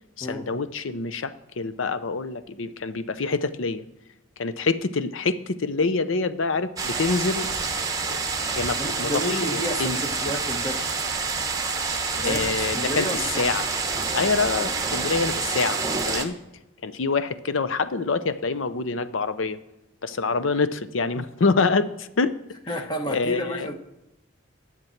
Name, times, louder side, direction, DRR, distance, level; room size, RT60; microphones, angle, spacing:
voice 1, 0.2-3.8 4.4-7.5 8.2-8.3 8.5-10.0 12.2-13.6 14.1-15.8 16.1-16.4 16.8-19.6 20.0-22.3 23.1-23.7, left 4 dB, 70° left, 13 dB, 0.6 m, -26 dB
sound 1, 6.8-16.2, right 4 dB, 20° right, 0.9 m, -27 dB
voice 2, 8.8-10.8 12.1-13.7 20.3-20.4 22.7-23.7, equal, 20° left, 5 dB, 1.1 m, -31 dB
11.0 x 7.4 x 5.8 m, 0.91 s
head